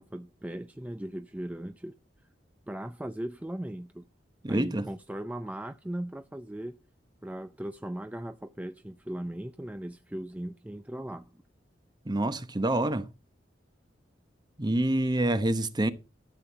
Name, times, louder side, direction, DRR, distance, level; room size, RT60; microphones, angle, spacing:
voice 1, 0.0-1.9 2.7-4.0 4.5-6.8 7.2-11.4, right 1 dB, 10° right, 0.5 m, -38 dB
voice 2, 4.4-4.9 12.1-13.1 14.6-15.9, right 1 dB, 25° right, 0.9 m, -27 dB
13.5 x 7.8 x 4.1 m
head